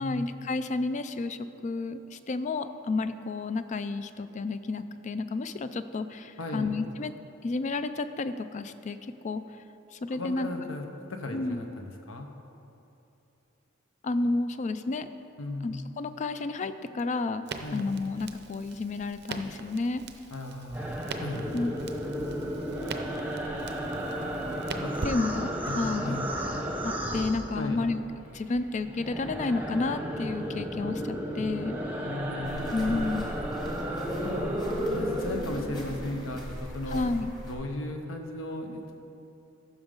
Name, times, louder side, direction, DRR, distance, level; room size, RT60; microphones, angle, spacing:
voice 1, 0.0-7.1 7.4-9.0 9.2-9.4 9.9-10.5 11.3-11.6 14.0-15.1 15.6-17.4 17.7-20.0 21.5-21.7 25.0-25.5 25.8-26.2 26.8-28.0 28.3-31.8 32.7-33.3 36.9-37.3, left 3 dB, 35° left, 11 dB, 0.3 m, -31 dB
voice 2, 6.4-6.8 10.1-12.3 15.4-15.8 17.6-17.9 20.3-21.5 24.8-24.9 25.6-26.3 27.5-27.8 32.0-32.8 34.2-34.6 34.9-37.1 37.5-38.9, left 2 dB, 70° left, 4 dB, 0.9 m, -36 dB
Crackle, 17.4-25.7, right 4 dB, 55° right, 0.6 m, -42 dB
sound 1, 20.7-28.1 28.4-36.4, equal, 10° right, 0.8 m, -33 dB
sound 2, 32.4-37.6, equal, 20° left, 1.5 m, -41 dB
14.5 x 6.2 x 3.8 m, 2.9 s
head